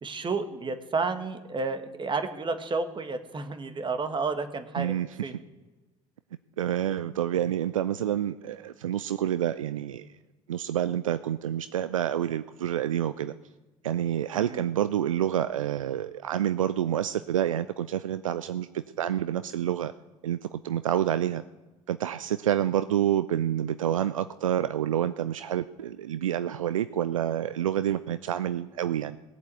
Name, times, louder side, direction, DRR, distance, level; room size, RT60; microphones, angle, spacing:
voice 1, 0.0-4.9 5.2-5.3 14.3-14.6, right 4 dB, 30° right, 9 dB, 1.9 m, -31 dB
voice 2, 4.8-5.1 5.3-5.4 6.6-10.1 10.5-13.3 13.8-19.9 20.2-21.4 21.9-29.2, right 10 dB, 80° right, 13 dB, 0.4 m, -28 dB
18.5 x 8.2 x 8.0 m, 1.2 s
figure-of-eight pair, 55°, 17 cm